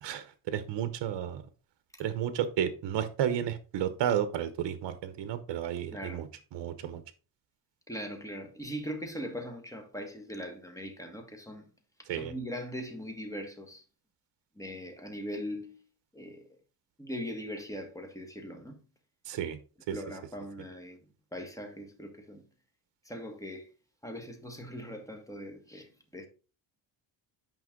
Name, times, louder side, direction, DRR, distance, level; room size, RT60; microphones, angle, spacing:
voice 1, 0.0-1.4 2.0-7.0 12.1-12.3 19.2-19.6 19.9-20.0, right 9 dB, 65° right, 1.0 m, -32 dB
voice 2, 5.9-6.2 7.9-11.7 12.1-13.8 14.5-15.8 16.1-16.5 17.0-18.8 19.9-21.0 21.3-22.4 23.0-23.7 24.0-26.3, equal, 5° left, 1.6 m, -40 dB
9.3 x 5.2 x 3.7 m
cardioid pair, 130°, 47 cm